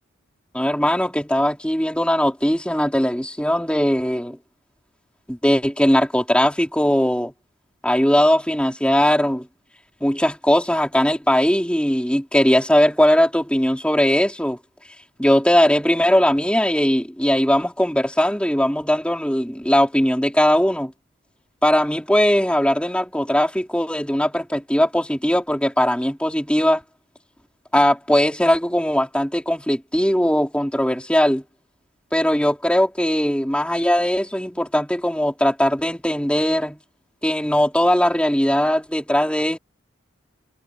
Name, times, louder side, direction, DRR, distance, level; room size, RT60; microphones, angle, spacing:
voice 1, 0.5-4.4 5.3-7.3 7.8-9.5 10.0-14.6 15.2-20.9 21.6-26.8 27.7-31.4 32.1-36.8 37.2-39.6, equal, 5° left, 4.2 m, -19 dB
head